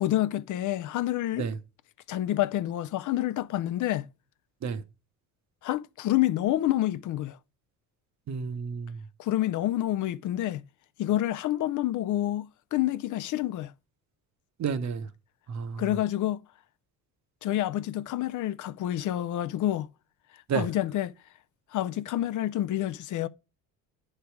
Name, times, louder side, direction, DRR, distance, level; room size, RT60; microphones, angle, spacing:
voice 1, 0.0-1.5 2.1-4.1 5.6-7.4 9.2-10.6 11.0-13.7 15.8-16.4 17.4-19.9 20.5-21.2 21.7-23.3, left 14 dB, 55° left, 0.4 m, -28 dB
voice 2, 8.3-9.0 14.6-15.1 15.5-15.8 20.5-20.7, right 6 dB, 45° right, 0.8 m, -30 dB
9.4 x 3.3 x 4.6 m
supercardioid pair, 80°, 37 cm